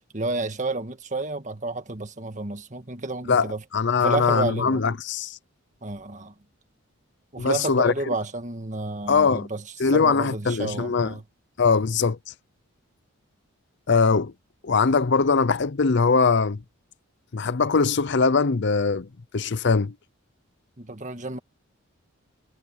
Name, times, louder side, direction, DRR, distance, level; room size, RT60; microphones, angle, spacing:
voice 1, 0.1-3.6 4.0-4.8 5.8-6.3 7.3-11.2 20.8-21.4, right 2 dB, 35° right, 1.7 m, -31 dB
voice 2, 3.3-5.4 7.4-7.9 9.1-9.5 9.8-11.1 11.6-12.2 13.9-14.3 14.6-16.6 17.3-19.1 19.3-19.9, left 4 dB, 55° left, 0.6 m, -21 dB
head